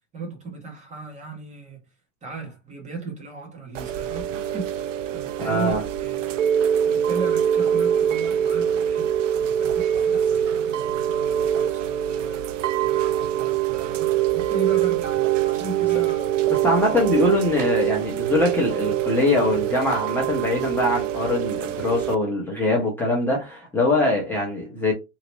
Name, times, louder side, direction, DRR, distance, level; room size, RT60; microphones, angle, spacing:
voice 1, 0.1-1.8 2.2-4.7 5.1-6.4 6.9-16.5 16.9-17.2, right 3 dB, 20° right, 1.1 m, -37 dB
Chime / Rain, 3.7-22.1, right 10 dB, 85° right, 0.5 m, -24 dB
voice 2, 5.4-5.8 16.5-24.9, left 2 dB, 5° left, 1.0 m, -22 dB
2.9 x 2.8 x 3.0 m
hypercardioid pair, 130°, 37 cm